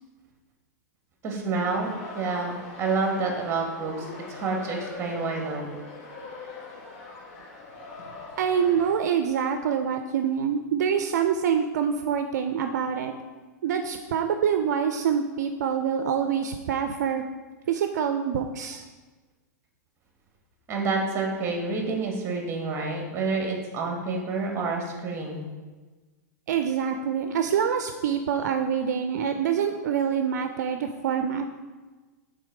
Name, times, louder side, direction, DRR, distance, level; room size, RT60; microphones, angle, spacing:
voice 1, 1.2-5.7 20.7-25.4, right 3 dB, 25° right, 1 dB, 1.5 m, -28 dB
sound 1, 1.6-8.9, left 3 dB, 50° left, 1.4 m, -41 dB
voice 2, 8.4-13.1 13.6-17.2 17.7-18.8 26.5-31.5, right 7 dB, 70° right, 7 dB, 0.4 m, -26 dB
6.2 x 3.8 x 4.7 m, 1.3 s
hypercardioid pair, 120°, 9 cm